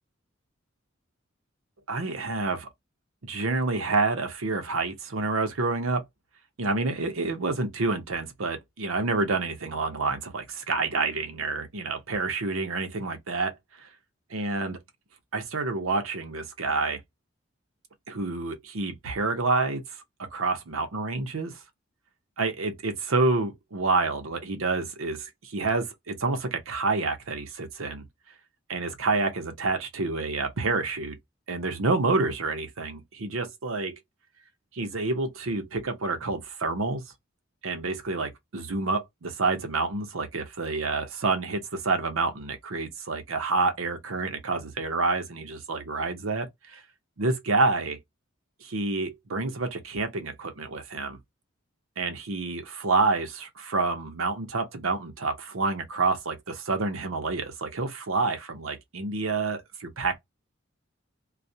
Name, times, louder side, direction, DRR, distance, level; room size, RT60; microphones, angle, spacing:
voice 1, 1.9-2.7 3.2-6.0 6.6-13.9 14.3-14.8 15.3-17.0 18.1-20.0 20.3-21.6 22.4-28.1 28.7-31.2 31.5-34.0 34.7-37.1 37.6-46.8 47.2-48.0 48.6-51.2 52.0-60.2, right 3 dB, 85° right, 0.7 m, -28 dB
2.4 x 2.1 x 2.6 m
head